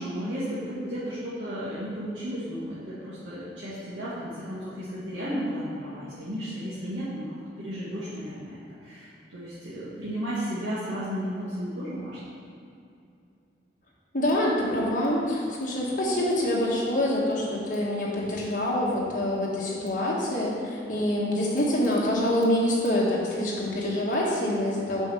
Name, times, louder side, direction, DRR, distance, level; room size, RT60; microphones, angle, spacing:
voice 1, 0.0-7.2 7.6-12.2, equal, 90° right, -11 dB, 1.7 m, -34 dB
voice 2, 14.1-25.1, left 1 dB, 45° left, -5 dB, 1.6 m, -26 dB
5.7 x 5.5 x 6.3 m, 2.6 s
head